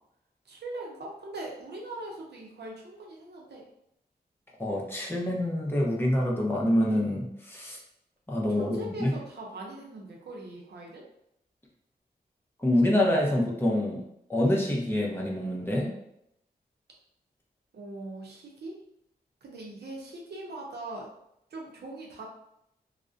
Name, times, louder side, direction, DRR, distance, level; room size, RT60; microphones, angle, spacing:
voice 1, 0.5-3.6 8.5-11.0 17.7-18.8 19.4-21.1 21.5-22.2, right 2 dB, 85° right, -2 dB, 0.6 m, -41 dB
voice 2, 4.6-7.8 8.3-9.1 12.6-14.0 14.3-15.9, left 1 dB, 15° left, -3 dB, 0.5 m, -26 dB
2.4 x 2.0 x 2.5 m, 0.78 s
wide cardioid pair, 95°, 17 cm